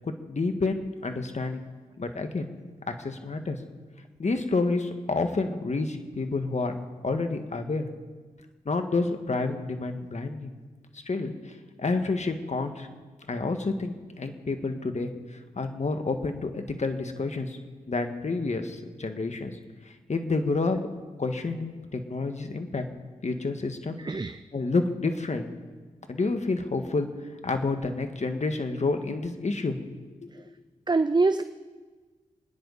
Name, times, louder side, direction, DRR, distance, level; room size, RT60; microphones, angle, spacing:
voice 1, 0.0-1.6 2.0-2.5 2.9-3.6 4.2-6.7 7.0-7.9 8.7-10.5 11.1-12.9 13.3-17.6 17.9-19.6 19.9-20.8 21.2-22.9 23.2-24.0 24.5-25.5 26.1-27.1 27.4-29.8 30.2-30.3, left 3 dB, 50° left, 6 dB, 1.8 m, -29 dB
voice 2, 24.0-24.4 30.3-30.4 30.9-31.4, right 3 dB, 30° right, 11 dB, 0.7 m, -24 dB
28.0 x 10.5 x 4.2 m, 1.4 s
cardioid pair, 45°, 15 cm